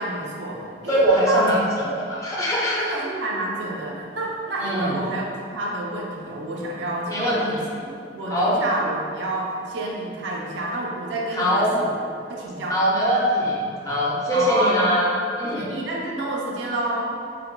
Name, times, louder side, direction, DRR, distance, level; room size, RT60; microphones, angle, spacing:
voice 1, 0.0-1.5 1.8-1.9 2.8-11.9 12.3-12.8 14.3-14.8 15.4-17.1, right 2 dB, 75° right, -3 dB, 0.5 m, -29 dB
voice 2, 0.9-2.9 4.6-4.9 7.1-7.6 8.3-8.6 11.3-11.8 12.7-15.7, equal, 20° left, -6 dB, 0.5 m, -22 dB
4.1 x 2.1 x 2.2 m, 2.4 s
head